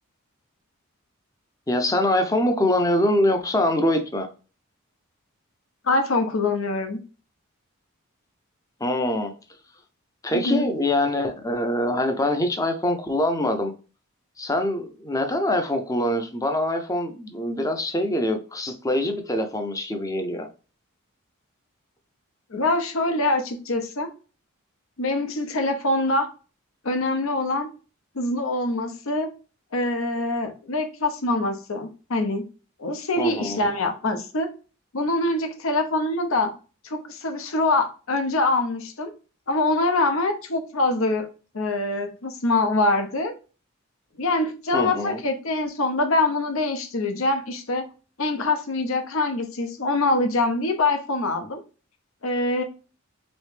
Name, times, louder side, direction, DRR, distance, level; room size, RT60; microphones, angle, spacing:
voice 1, 1.7-4.3 8.8-9.3 10.2-13.7 14.4-20.5 33.2-33.7 44.7-45.2, left 1 dB, 15° left, 0.5 m, -24 dB
voice 2, 5.8-7.0 10.3-10.7 22.5-24.1 25.0-26.3 26.8-27.7 28.1-29.3 29.7-32.4 32.8-34.5 34.9-36.5 36.8-39.1 39.5-41.3 41.5-43.3 44.2-47.9 48.2-51.6 52.2-52.6, left 2 dB, 70° left, 0.8 m, -24 dB
3.5 x 3.1 x 3.3 m
head